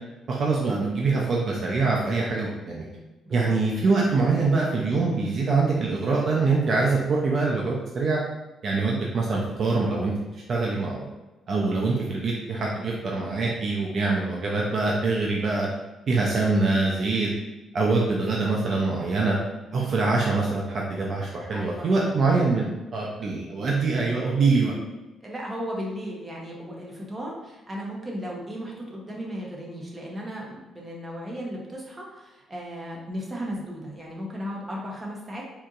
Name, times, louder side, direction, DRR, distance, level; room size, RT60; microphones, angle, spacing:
voice 1, 0.3-2.9 3.3-8.2 8.6-11.1 11.5-15.7 16.1-17.3 17.7-19.4 19.7-24.7, right 3 dB, 55° right, -3 dB, 0.6 m, -24 dB
voice 2, 21.5-22.1 25.2-35.4, equal, 25° right, -3 dB, 1.0 m, -35 dB
4.3 x 2.7 x 2.5 m, 1.1 s
cardioid pair, 90°, 0 cm